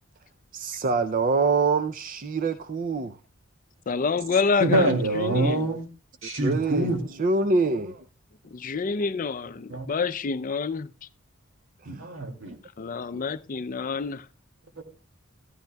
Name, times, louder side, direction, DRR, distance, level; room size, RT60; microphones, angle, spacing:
voice 1, 0.5-3.2 6.2-8.0 11.8-12.1 13.1-13.2, right 3 dB, 45° right, 0.5 m, -25 dB
voice 2, 3.9-5.7 8.5-10.9 12.8-14.2, left 5 dB, 40° left, 0.5 m, -28 dB
voice 3, 4.6-5.9 6.2-7.0 9.7-9.9 11.9-12.5 14.8-14.9, right 1 dB, 80° right, 2.3 m, -25 dB
14.0 x 13.0 x 2.2 m
head